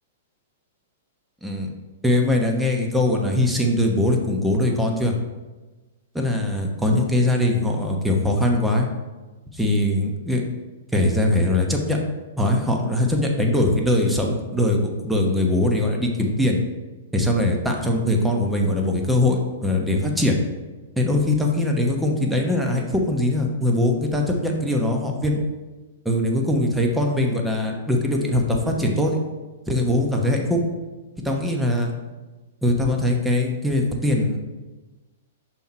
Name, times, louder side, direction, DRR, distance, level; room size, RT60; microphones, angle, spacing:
voice 1, 2.0-5.1 6.1-8.9 9.5-10.4 10.9-12.0 12.4-16.6 17.1-20.4 21.0-25.4 26.0-29.2 29.7-30.6 31.2-31.9 32.6-34.4, left 1 dB, 5° right, 1 dB, 0.9 m, -21 dB
5.6 x 4.4 x 4.4 m, 1.2 s
hypercardioid pair, 115°, 0 cm